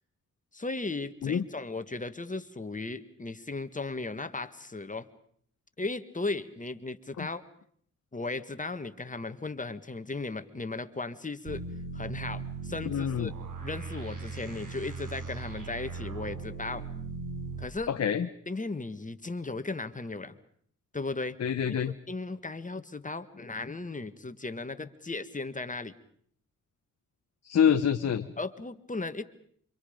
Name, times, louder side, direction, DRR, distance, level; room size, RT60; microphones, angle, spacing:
voice 1, 0.5-5.1 5.8-7.4 8.1-11.6 11.9-13.3 13.6-16.9 17.6-17.9 18.5-20.4 20.9-21.4 21.7-21.8 22.1-25.9 28.4-29.2, left 3 dB, 25° left, 10 dB, 1.6 m, -36 dB
sound 1, 11.5-17.7, right 4 dB, 80° right, 4.9 m, -38 dB
voice 2, 12.9-13.3 17.9-18.3 21.4-21.9 27.4-28.3, left 8 dB, 55° left, 7 dB, 1.0 m, -26 dB
29.0 x 26.0 x 5.2 m, 0.62 s
cardioid pair, 70°, 31 cm